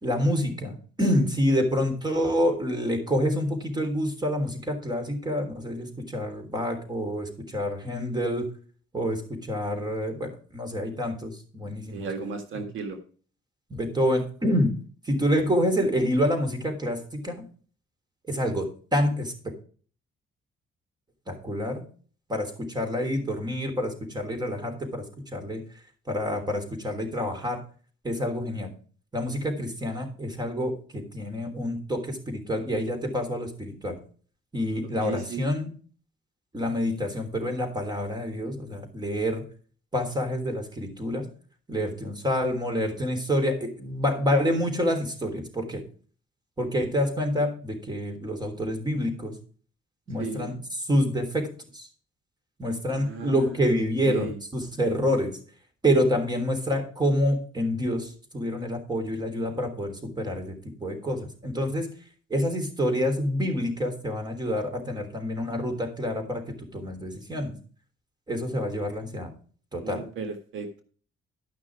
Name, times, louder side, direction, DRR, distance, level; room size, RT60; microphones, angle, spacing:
voice 1, 0.0-8.5 8.9-12.1 13.7-14.8 15.0-17.4 18.3-19.5 21.3-21.8 22.3-25.0 25.3-25.6 26.1-27.6 28.0-28.7 29.1-34.0 34.5-35.7 36.5-39.4 39.9-41.3 41.7-45.8 46.6-49.3 50.1-51.5 51.7-51.9 52.6-55.4 55.8-61.9 62.3-66.4 66.7-67.5 68.3-69.3 69.7-70.0, equal, 20° right, 5 dB, 3.4 m, -27 dB
voice 2, 11.9-13.0 35.0-35.5 50.2-50.5 52.9-53.5 54.0-54.4 69.8-70.8, right 4 dB, 80° right, 6 dB, 1.8 m, -34 dB
12.0 x 6.1 x 4.8 m, 0.42 s
cardioid pair, 90°, 20 cm